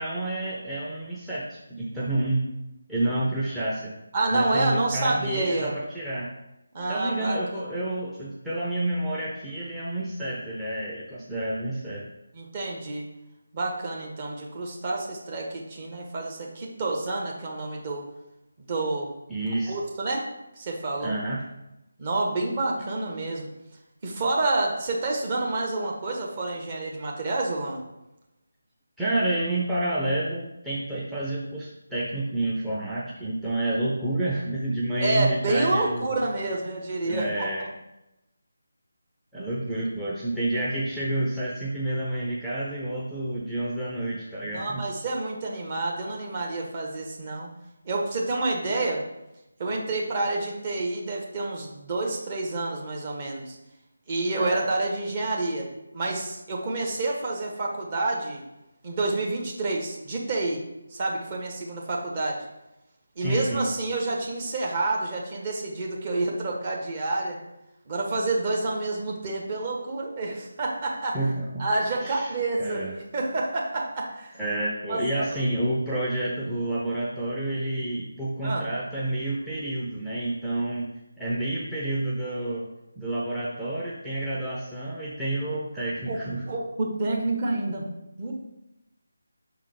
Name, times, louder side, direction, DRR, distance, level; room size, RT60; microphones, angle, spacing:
voice 1, 0.0-2.4 2.9-3.9 4.3-6.3 6.9-12.0 19.3-19.7 21.0-21.4 29.0-36.2 37.0-37.7 39.3-44.8 54.3-54.7 63.2-63.6 71.1-71.6 72.0-72.3 72.6-72.9 74.4-80.9 81.2-82.7 83.0-86.4, right 1 dB, 5° right, -8 dB, 0.7 m, -29 dB
voice 2, 4.1-5.8 6.7-7.4 12.3-13.1 13.5-18.1 18.6-19.1 19.7-21.2 22.0-23.5 24.0-27.8 35.0-37.5 39.8-39.9 44.4-47.5 47.8-49.0 49.6-53.6 54.1-55.7 55.9-58.4 58.8-60.6 60.9-62.5 63.1-67.4 67.9-71.2 71.6-74.4 74.9-75.4 78.4-78.6 86.1-86.2 86.4-87.9 88.2-88.3, right 2 dB, 30° right, -2 dB, 1.1 m, -28 dB
5.4 x 3.7 x 4.9 m, 0.91 s
figure-of-eight pair, 155°, 0 cm